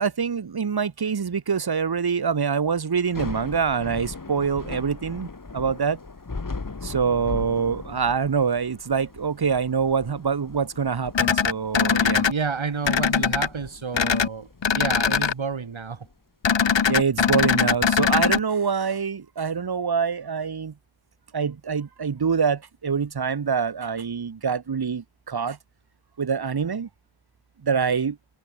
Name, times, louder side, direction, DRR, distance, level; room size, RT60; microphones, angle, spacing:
voice 1, 0.0-6.0 6.8-12.3 16.9-20.7 21.3-25.6 26.2-26.9 27.6-28.2, right 6 dB, 50° right, 1.3 m, -25 dB
Thunder / Rain, 3.0-16.1, left 3 dB, 40° left, 3.1 m, -39 dB
sound 1, 11.1-12.3 12.8-13.5 13.9-14.3 14.6-15.3 16.4-18.4, left 6 dB, 65° left, 1.6 m, -21 dB
voice 2, 12.3-16.1, right 5 dB, 75° right, 4.2 m, -30 dB
cardioid pair, 50°, 47 cm